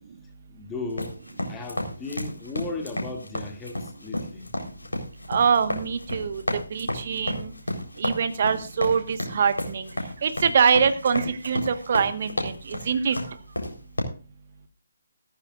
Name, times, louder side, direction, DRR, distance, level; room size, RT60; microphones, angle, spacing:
voice 1, 0.5-1.2 1.5-4.5, left 3 dB, 10° left, 2.5 m, -36 dB
sound 1, 0.9-14.0, left 1 dB, 80° left, 4.1 m, -32 dB
voice 2, 5.3-6.4 6.7-7.5 8.0-9.9 10.2-13.2, right 6 dB, 45° right, 1.5 m, -24 dB
14.5 x 14.0 x 2.5 m
figure-of-eight pair, 145°, 0 cm